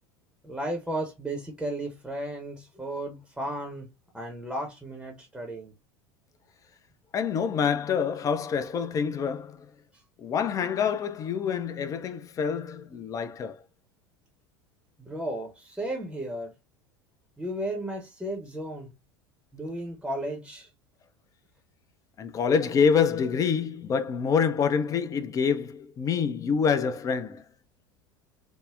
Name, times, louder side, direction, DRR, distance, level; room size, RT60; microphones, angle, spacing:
voice 1, 0.4-3.9 4.1-5.7 15.0-16.5 17.4-18.9 19.5-20.7, right 1 dB, 5° right, 0.7 m, -34 dB
voice 2, 7.1-9.7 10.2-13.6 22.2-27.4, left 6 dB, 25° left, 0.4 m, -26 dB
3.5 x 2.0 x 2.3 m
figure-of-eight pair, 75°, 14 cm